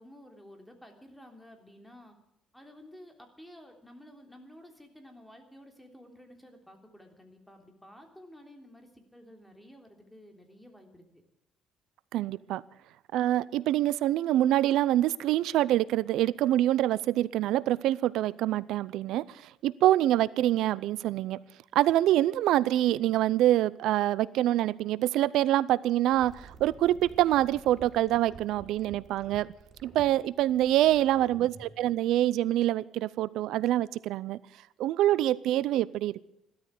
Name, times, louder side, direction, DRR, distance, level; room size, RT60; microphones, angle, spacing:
voice 1, 0.0-2.2 2.5-11.2 30.8-31.0, equal, 5° left, 3 dB, 3.3 m, -52 dB
voice 2, 12.1-12.6 13.1-21.4 21.7-29.5 29.8-34.4 34.8-36.2, right 13 dB, 80° right, 19 dB, 0.5 m, -25 dB
sound 1, 26.1-31.7, right 4 dB, 50° right, 6.2 m, -50 dB
15.5 x 13.0 x 6.5 m, 0.85 s
cardioid pair, 110°, 0 cm